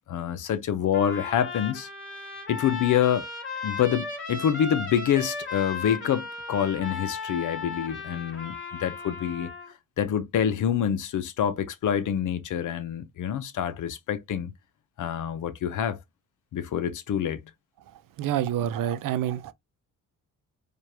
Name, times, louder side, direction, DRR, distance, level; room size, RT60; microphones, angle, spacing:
voice 1, 0.1-1.9 2.5-3.3 3.6-9.5 10.0-14.5 15.0-16.0 16.5-17.5, left 9 dB, 65° left, 0.8 m, -26 dB
Trumpet, 0.9-9.7, left 4 dB, 35° left, 2.4 m, -36 dB
voice 2, 17.9-19.5, right 11 dB, 75° right, 0.6 m, -28 dB
4.6 x 2.5 x 3.3 m
cardioid pair, 100°, 33 cm